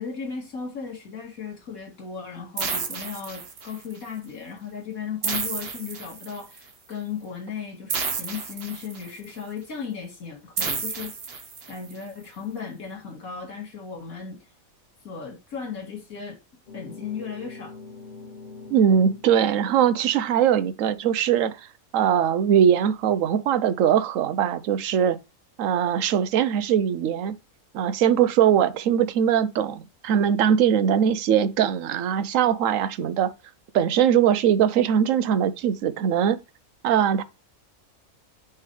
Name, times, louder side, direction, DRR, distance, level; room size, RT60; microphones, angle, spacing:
voice 1, 0.0-14.4 15.0-16.4 16.7-17.8, left 6 dB, 75° left, 2.4 m, -36 dB
sound 1, 2.6-3.9 5.2-6.6 7.9-9.3 10.6-11.9, right 5 dB, 45° right, 1.2 m, -31 dB
sound 2, 16.7-19.4, left 3 dB, 40° left, 0.7 m, -42 dB
voice 2, 18.7-21.7 21.9-25.2 25.6-27.4 27.7-33.3 33.7-36.4 36.8-37.2, right 9 dB, 70° right, 1.0 m, -21 dB
9.6 x 3.5 x 3.2 m
omnidirectional pair, 1.5 m